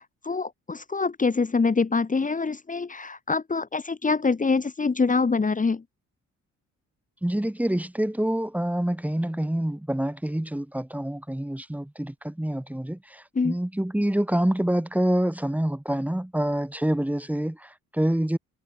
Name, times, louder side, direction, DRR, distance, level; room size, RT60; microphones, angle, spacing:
voice 1, 0.0-5.8 13.4-13.5, left 4 dB, 25° left, 2.3 m, -25 dB
voice 2, 7.2-18.4, right 1 dB, 5° right, 3.1 m, -26 dB
cardioid pair, 90°, 30 cm